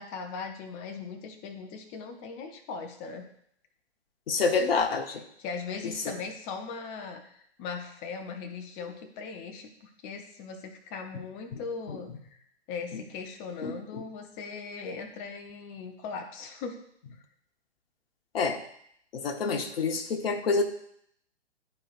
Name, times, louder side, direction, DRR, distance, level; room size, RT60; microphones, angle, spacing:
voice 1, 0.0-3.3 5.4-16.8 17.1-17.2, left 5 dB, 20° left, 6 dB, 0.6 m, -39 dB
voice 2, 4.3-5.2 11.9-12.0 13.6-13.7 18.3-18.6 19.1-20.6, left 4 dB, 55° left, 5 dB, 1.1 m, -27 dB
11.5 x 4.5 x 2.5 m, 0.68 s
figure-of-eight pair, 125°, 34 cm